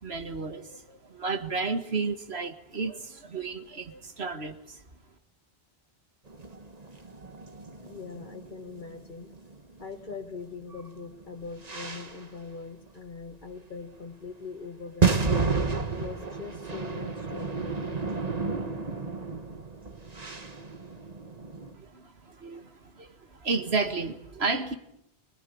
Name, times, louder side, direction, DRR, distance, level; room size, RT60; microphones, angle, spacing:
voice 1, 0.0-4.8 21.7-23.1 23.4-24.8, right 4 dB, 80° right, 8 dB, 2.0 m, -32 dB
sound 1, 6.3-10.4 10.7-12.4 12.9-13.0 13.8-13.9 14.9-21.7, right 4 dB, 40° right, 1.6 m, -31 dB
voice 2, 7.8-9.3 9.8-15.3 15.9-17.9, left 4 dB, 50° left, 1 dB, 1.8 m, -42 dB
25.0 x 20.5 x 8.6 m, 0.75 s
omnidirectional pair, 1.1 m